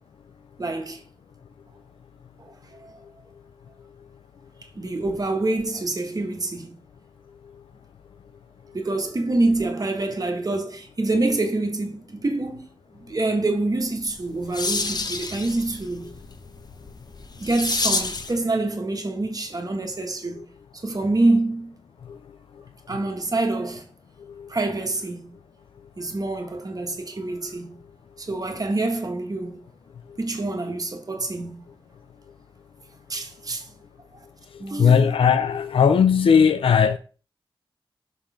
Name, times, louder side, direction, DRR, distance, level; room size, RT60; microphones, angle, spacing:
voice 1, 0.6-1.0 2.4-2.5 2.8-2.9 4.7-6.8 8.7-12.6 12.9-16.1 17.4-20.4 20.8-21.7 22.9-23.9 24.5-25.3 26.0-27.8 28.2-29.6 30.2-31.6 33.1-33.7 34.6-35.1, right 2 dB, 45° right, 1.3 m, -26 dB
sound 1, 14.0-18.4, left 3 dB, 50° left, 0.8 m, -29 dB
voice 2, 34.8-37.0, left 7 dB, 90° left, 0.4 m, -17 dB
6.1 x 3.7 x 4.9 m
wide cardioid pair, 75°, 9 cm